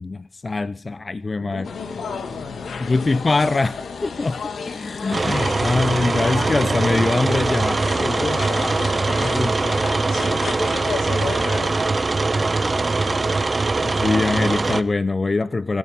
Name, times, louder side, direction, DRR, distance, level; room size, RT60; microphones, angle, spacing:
voice 1, 0.0-1.7 2.8-8.7 9.2-9.8 13.8-15.8, left 3 dB, 35° left, 15 dB, 0.8 m, -23 dB
voice 2, 1.4-3.7 8.5-9.3 9.7-13.5, left 5 dB, 90° left, 4 dB, 4.2 m, -35 dB
sound 1, 1.6-11.8, left 5 dB, 70° left, 2.4 m, -33 dB
sound 2, 5.1-14.8, right 3 dB, 35° right, 1.3 m, -22 dB
26.5 x 14.0 x 3.7 m, 0.42 s
cardioid pair, 75°, 0 cm